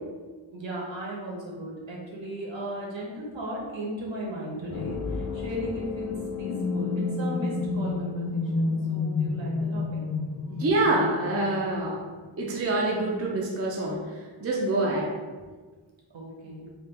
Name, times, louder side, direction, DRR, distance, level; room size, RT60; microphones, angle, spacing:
voice 1, 0.5-10.0 16.1-16.7, equal, 65° right, -4 dB, 1.0 m, -36 dB
sound 1, 4.7-12.4, left 4 dB, 35° left, 0.4 m, -30 dB
voice 2, 10.6-12.0 12.4-15.1, right 2 dB, 30° right, -2 dB, 0.5 m, -26 dB
3.3 x 2.3 x 3.2 m, 1.4 s
wide cardioid pair, 90°, 48 cm